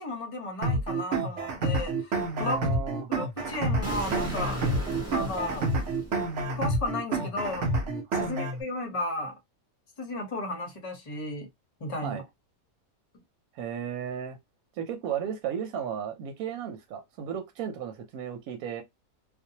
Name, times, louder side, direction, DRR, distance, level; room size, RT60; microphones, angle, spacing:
voice 1, 0.0-2.7 3.1-4.6 5.1-5.7 6.6-7.7 8.1-9.3 10.0-11.5 11.8-12.2, left 2 dB, 35° left, 0.6 m, -34 dB
sound 1, 0.6-8.6, right 2 dB, 65° right, 0.9 m, -29 dB
voice 2, 2.4-3.1 8.1-8.3 12.0-12.2 13.5-14.4 14.8-18.8, right 8 dB, 90° right, 1.1 m, -34 dB
Explosion, 3.8-6.7, right 1 dB, 20° right, 0.4 m, -37 dB
2.5 x 2.1 x 2.7 m
omnidirectional pair, 1.5 m